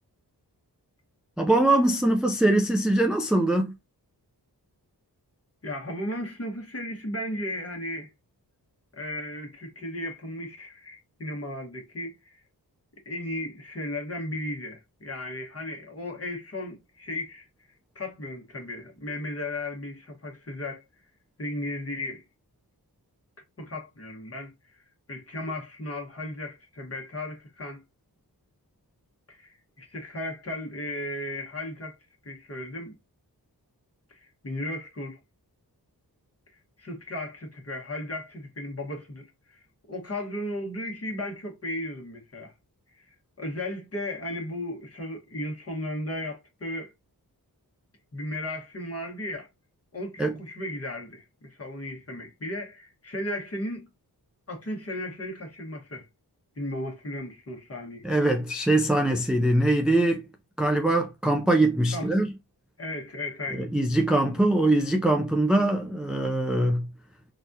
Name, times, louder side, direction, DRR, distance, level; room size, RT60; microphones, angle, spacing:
voice 1, 1.4-3.7 50.2-50.3 58.0-60.2 60.6-62.3 63.5-66.9, right 1 dB, ahead, 0.3 m, -22 dB
voice 2, 5.6-8.1 8.9-12.4 13.0-17.5 17.9-20.8 21.4-22.2 23.6-24.5 25.1-27.8 29.3-31.9 32.2-32.9 34.1-35.2 36.8-39.6 39.9-42.5 42.9-46.9 48.1-49.5 49.9-53.9 54.5-56.1 56.6-58.1 61.9-62.1 62.8-63.7, left 1 dB, 35° left, 1.2 m, -35 dB
4.0 x 2.4 x 2.6 m
wide cardioid pair, 100°, 40 cm